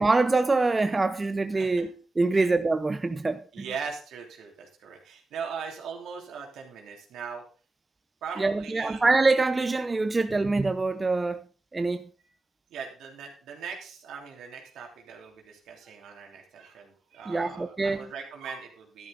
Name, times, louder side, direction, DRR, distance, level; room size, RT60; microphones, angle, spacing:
voice 1, 0.0-3.6 8.4-11.4 11.7-12.0 17.3-18.0, right 3 dB, 25° right, 0.7 m, -25 dB
voice 2, 3.5-7.4 8.2-9.0 12.2-12.3 12.7-19.1, right 6 dB, 80° right, 3.2 m, -40 dB
12.0 x 11.0 x 3.9 m
cardioid pair, 90°, 0 cm